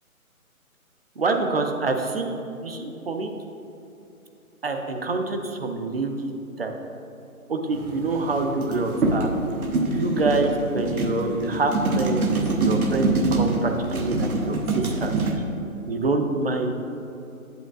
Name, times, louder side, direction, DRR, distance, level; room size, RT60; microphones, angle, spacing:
voice 1, 1.2-2.3 2.6-3.3 4.6-6.3 6.6-6.7 7.5-9.3 9.8-14.6 15.0-15.1 15.9-16.7, right 3 dB, 45° right, 4 dB, 0.6 m, -26 dB
sound 1, 7.7-15.4, right 2 dB, 80° right, 0.9 m, -25 dB
7.9 x 7.5 x 2.4 m, 2.8 s
figure-of-eight pair, 145°, 43 cm